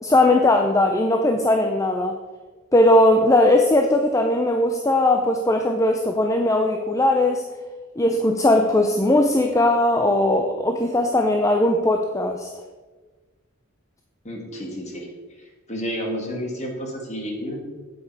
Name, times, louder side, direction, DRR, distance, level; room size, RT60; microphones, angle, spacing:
voice 1, 0.0-2.2 2.7-7.4 8.0-12.5, left 1 dB, 15° left, 4 dB, 0.6 m, -19 dB
voice 2, 14.2-15.1 15.4-17.6, equal, 35° left, 0 dB, 2.1 m, -31 dB
8.8 x 8.1 x 4.8 m, 1.3 s
head